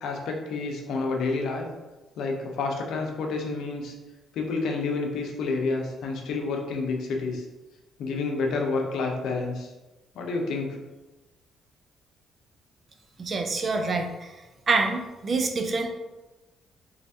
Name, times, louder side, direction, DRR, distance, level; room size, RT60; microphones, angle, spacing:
voice 1, 0.0-1.7 2.2-3.9 4.3-7.4 8.0-9.7 10.1-10.8, left 3 dB, 80° left, 1 dB, 0.7 m, -29 dB
voice 2, 13.2-14.3 14.7-15.9, right 3 dB, 40° right, 4 dB, 0.5 m, -26 dB
3.3 x 2.6 x 3.4 m, 1.1 s
cardioid pair, 90°, 0 cm